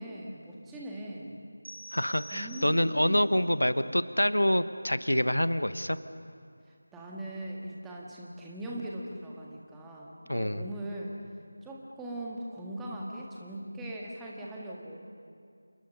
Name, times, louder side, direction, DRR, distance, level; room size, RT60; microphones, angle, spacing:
voice 1, 0.0-1.4 2.3-3.2 6.9-11.2 11.6-15.0, right 1 dB, 5° right, -4 dB, 1.7 m, -40 dB
sound 1, 1.6-3.2, right 1 dB, 65° right, 5.1 m, -47 dB
voice 2, 1.9-6.0 10.3-10.6, equal, 80° left, 13 dB, 1.0 m, -26 dB
29.0 x 28.0 x 5.6 m, 2.4 s
figure-of-eight pair, 165°, 0 cm